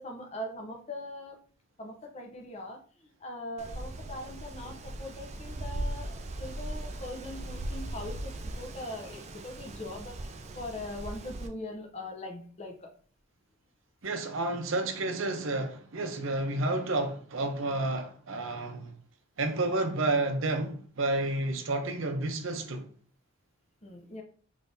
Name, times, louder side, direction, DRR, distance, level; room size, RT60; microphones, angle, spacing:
voice 1, 0.0-1.4 1.8-2.8 3.2-10.3 10.5-12.9 23.8-24.2, left 1 dB, 30° left, 0.6 m, -41 dB
Wind, 3.6-11.5, right 1 dB, 30° right, 0.3 m, -39 dB
voice 2, 14.0-19.0 19.4-22.8, right 2 dB, 70° right, 0.6 m, -30 dB
3.7 x 3.3 x 2.6 m
head